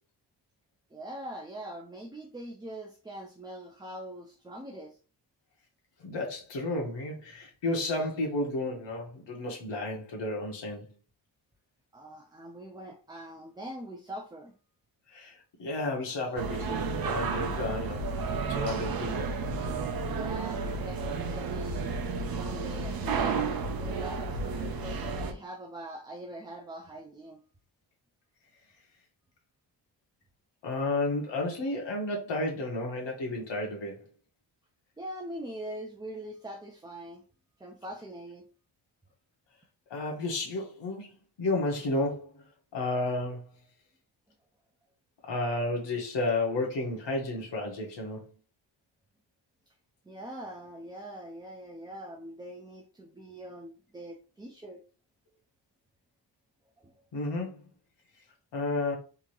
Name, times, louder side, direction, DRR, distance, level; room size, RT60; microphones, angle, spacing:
voice 1, 0.9-5.0 11.9-14.6 20.1-23.4 23.8-27.4 35.0-37.2 37.6-38.5 50.1-54.8 56.8-56.9, right 1 dB, 10° right, 0.4 m, -43 dB
voice 2, 6.0-10.9 15.1-18.1 18.5-19.3 30.6-34.0 39.9-41.1 41.4-42.4 42.7-43.5 45.2-48.3 57.1-57.6 58.5-59.0, left 2 dB, 65° left, 1.4 m, -32 dB
sound 1, 16.4-25.3, right 4 dB, 50° right, 0.7 m, -32 dB
3.7 x 2.8 x 3.0 m
wide cardioid pair, 120°, 46 cm